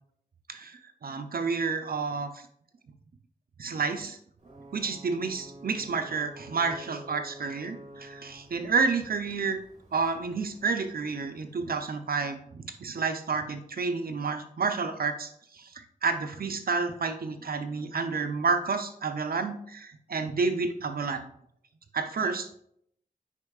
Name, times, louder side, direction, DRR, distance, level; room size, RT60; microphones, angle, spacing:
voice 1, 0.5-2.4 3.6-4.2 4.7-9.6 9.9-21.3 21.9-22.6, right 4 dB, 75° right, 7 dB, 0.6 m, -30 dB
Ocean / Boat Water vehicle / Alarm, 4.4-12.0, right 1 dB, 50° right, 1.9 m, -50 dB
8.3 x 5.4 x 2.4 m, 0.71 s
wide cardioid pair, 55°, 15 cm